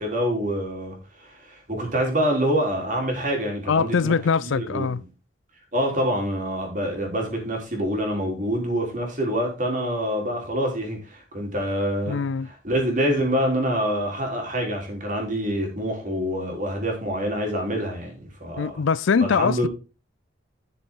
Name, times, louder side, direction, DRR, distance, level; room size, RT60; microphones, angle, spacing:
voice 1, 0.0-4.1 4.4-4.9 5.7-12.2 12.5-18.8 19.2-19.7, equal, 40° right, 3.5 m, -26 dB
voice 2, 3.7-5.0 12.1-12.5 18.6-19.7, left 5 dB, 70° left, 0.4 m, -22 dB
11.0 x 6.9 x 3.7 m
head